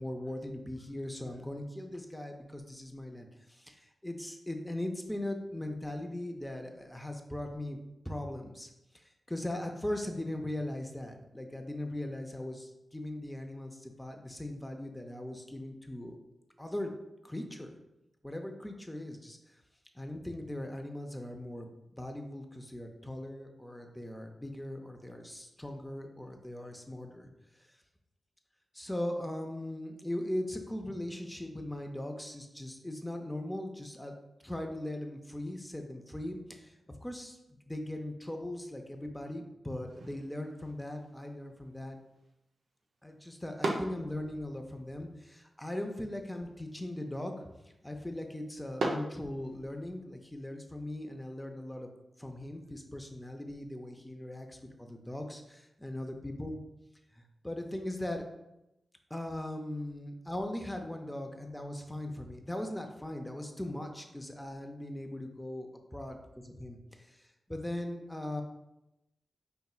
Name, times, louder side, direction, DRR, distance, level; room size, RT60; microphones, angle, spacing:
voice 1, 0.0-7.8 8.0-8.7 8.9-16.2 16.6-16.9 17.2-17.7 18.2-19.4 20.0-27.3 28.7-34.1 34.4-37.4 37.7-42.0 43.0-47.5 47.8-51.9 52.2-56.6 57.1-58.3 59.1-68.4, left 1 dB, 10° left, 3 dB, 0.5 m, -39 dB
sound 1, 39.9-49.9, right 2 dB, 85° right, 0.5 m, -42 dB
5.4 x 2.8 x 2.4 m, 0.91 s
cardioid pair, 50°, 0 cm